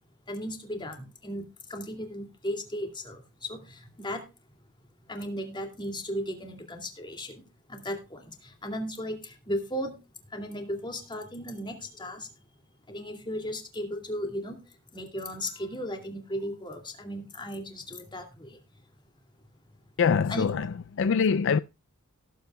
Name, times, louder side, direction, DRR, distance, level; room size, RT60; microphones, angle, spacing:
voice 1, 0.3-4.2 5.1-7.4 7.7-8.2 8.6-9.9 10.3-12.3 12.9-14.6 14.9-18.5 20.3-20.5, equal, 20° left, 2.4 m, -36 dB
voice 2, 20.0-21.6, left 6 dB, 60° left, 0.4 m, -24 dB
18.0 x 8.4 x 2.3 m
head